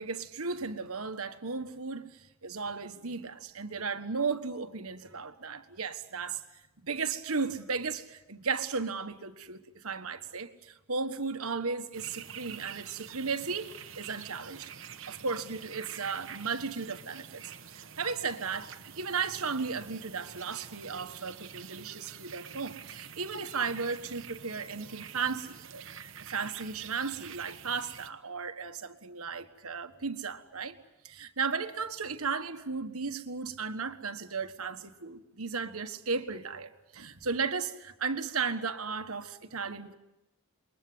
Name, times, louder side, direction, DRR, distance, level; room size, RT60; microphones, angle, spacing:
voice 1, 0.0-6.4 6.8-14.7 15.1-25.6 25.9-26.0 26.3-30.8 31.0-39.9, right 5 dB, 75° right, 1.5 m, -35 dB
sound 1, 11.9-28.1, right 8 dB, 60° right, 1.2 m, -47 dB
28.0 x 23.0 x 8.0 m
head